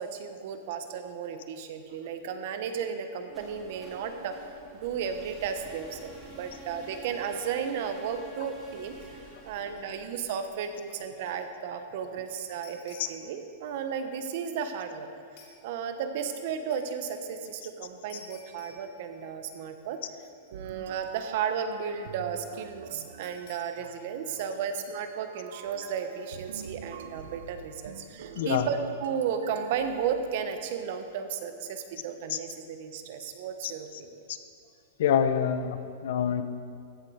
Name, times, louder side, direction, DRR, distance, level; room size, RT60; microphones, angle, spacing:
voice 1, 0.0-4.3 4.7-9.2 9.4-15.1 15.6-20.0 20.5-34.1, right 7 dB, 55° right, 8 dB, 1.0 m, -34 dB
sound 1, 3.2-11.2, right 1 dB, 15° right, 3.1 m, -49 dB
sound 2, 9.7-9.9 10.2-11.5 11.8-13.4 15.4-15.6 16.7-17.0 18.1-19.5 19.8-19.9 20.2-21.0 23.2-23.9, left 5 dB, 55° left, 2.0 m, -55 dB
sound 3, 20.5-30.8, right 7 dB, 80° right, 0.7 m, -46 dB
voice 2, 28.3-28.7 32.3-32.4 33.6-33.7 34.3-34.4 35.0-36.4, left 8 dB, 70° left, 10 dB, 0.7 m, -26 dB
15.0 x 7.7 x 4.8 m, 2.3 s
supercardioid pair, 150°, 0 cm